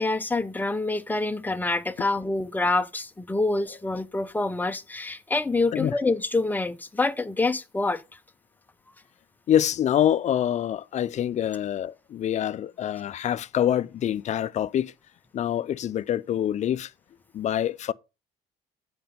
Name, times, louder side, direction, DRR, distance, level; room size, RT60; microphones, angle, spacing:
voice 1, 0.0-8.0, left 2 dB, 10° left, 0.7 m, -26 dB
voice 2, 9.5-14.9 15.3-16.9 17.3-17.9, left 10 dB, 45° left, 0.4 m, -25 dB
7.7 x 5.2 x 5.3 m
cardioid pair, 110°, 17 cm